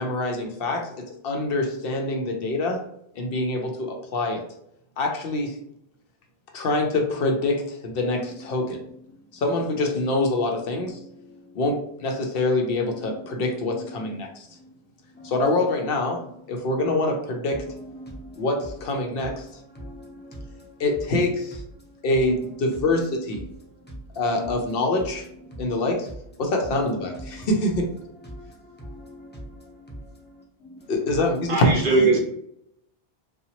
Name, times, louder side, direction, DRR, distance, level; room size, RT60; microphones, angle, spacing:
voice 1, 0.0-2.8 3.2-4.4 5.0-5.6 6.5-8.8 9.3-11.0 11.5-14.5 15.2-16.2 16.5-17.7 18.4-19.4 20.8-21.6 22.0-23.4 24.1-25.3 25.6-26.1 26.4-27.9 30.9-31.7, left 2 dB, 70° left, 2 dB, 0.8 m, -25 dB
voice 2, 18.0-18.4 19.8-20.5 27.4-27.5 28.3-28.5 28.8-29.4, equal, 10° left, -3 dB, 0.7 m, -41 dB
voice 3, 31.5-32.2, right 3 dB, 60° right, -1 dB, 0.7 m, -20 dB
2.8 x 2.3 x 2.8 m, 0.73 s
omnidirectional pair, 1.0 m